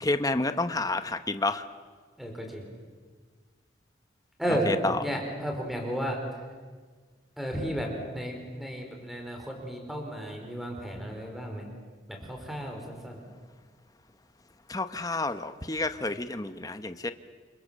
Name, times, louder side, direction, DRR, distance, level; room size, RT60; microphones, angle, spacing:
voice 1, 0.0-1.6 4.7-5.0 14.7-17.1, left 2 dB, 20° left, 9 dB, 1.0 m, -29 dB
voice 2, 2.2-2.7 4.4-4.7 5.0-6.2 7.4-11.7 12.1-13.2, equal, ahead, 2 dB, 4.7 m, -33 dB
28.5 x 25.5 x 7.5 m, 1.5 s
head